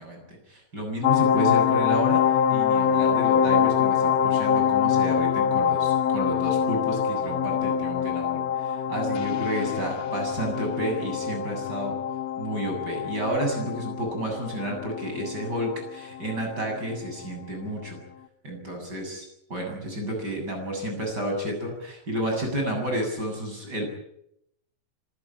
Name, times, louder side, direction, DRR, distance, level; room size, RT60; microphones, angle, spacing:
voice 1, 0.0-2.2 2.5-12.0 12.4-18.0 18.4-23.9, right 1 dB, 30° right, 2 dB, 8.3 m, -31 dB
sound 1, 1.0-16.6 16.9-17.1, left 8 dB, 65° left, 1.8 m, -25 dB
26.0 x 17.0 x 8.9 m, 0.77 s
omnidirectional pair, 3.9 m